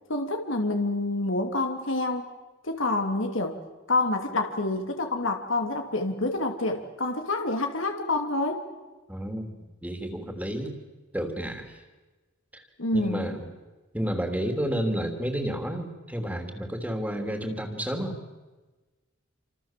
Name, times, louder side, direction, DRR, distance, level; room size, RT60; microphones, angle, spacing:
voice 1, 0.1-2.3 2.6-3.6 3.9-8.7 12.8-13.3, left 2 dB, 90° left, 4 dB, 2.7 m, -27 dB
voice 2, 9.1-9.5 9.8-10.7 11.1-11.8 12.5-12.6 12.9-13.5 13.9-18.2, equal, 10° right, 5 dB, 3.3 m, -31 dB
28.0 x 26.5 x 7.5 m, 1.2 s
head